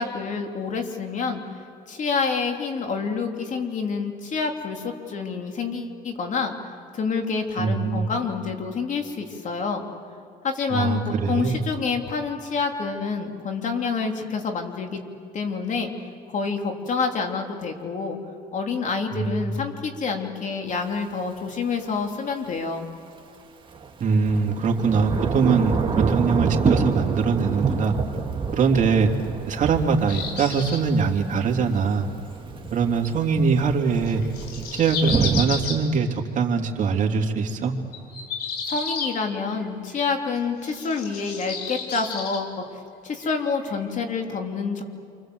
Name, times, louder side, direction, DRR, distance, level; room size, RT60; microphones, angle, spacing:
voice 1, 0.0-1.4 1.9-6.5 6.9-9.9 10.4-15.0 15.3-15.9 16.3-18.2 18.5-22.9 38.7-44.8, left 5 dB, 45° left, 3 dB, 3.2 m, -28 dB
voice 2, 7.6-8.1 10.7-11.6 19.1-19.6 24.0-27.9 28.5-29.1 29.5-32.1 32.7-34.2 34.7-37.7, right 5 dB, 50° right, 2 dB, 2.9 m, -22 dB
Thunder / Rain, 20.7-20.8 23.7-35.4, right 5 dB, 30° right, 2.2 m, -28 dB
sound 1, 30.1-30.8 33.9-35.8 37.9-39.6 40.6-42.4 43.2-43.4 43.6-43.7, left 5 dB, 70° left, 3.7 m, -32 dB
28.5 x 25.0 x 7.9 m, 2.6 s
cardioid pair, 110°, 17 cm